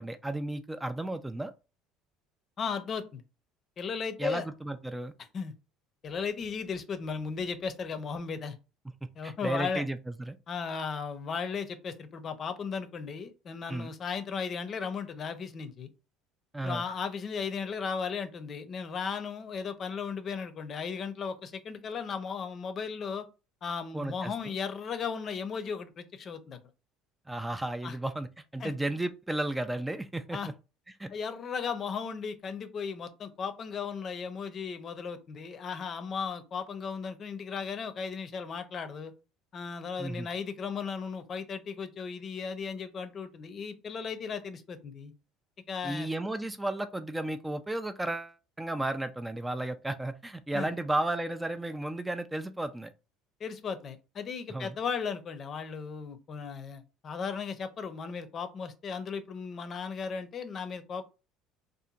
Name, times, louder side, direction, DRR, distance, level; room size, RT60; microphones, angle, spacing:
voice 1, 0.0-1.5 4.2-5.1 9.2-10.4 13.7-13.9 16.5-16.8 23.9-24.3 27.3-30.4 31.0-31.1 40.0-40.3 45.8-52.9 54.5-54.8, right 1 dB, 10° right, 0.3 m, -33 dB
voice 2, 2.6-3.2 3.8-4.5 5.3-5.5 6.0-8.6 9.2-9.8 10.5-15.9 16.6-23.3 23.6-26.6 27.8-28.0 28.6-28.7 30.3-30.5 31.1-39.1 39.5-45.1 45.7-46.1 50.5-50.7 53.4-61.1, left 6 dB, 45° left, 0.6 m, -36 dB
2.7 x 2.5 x 2.4 m
hypercardioid pair, 75°, 0 cm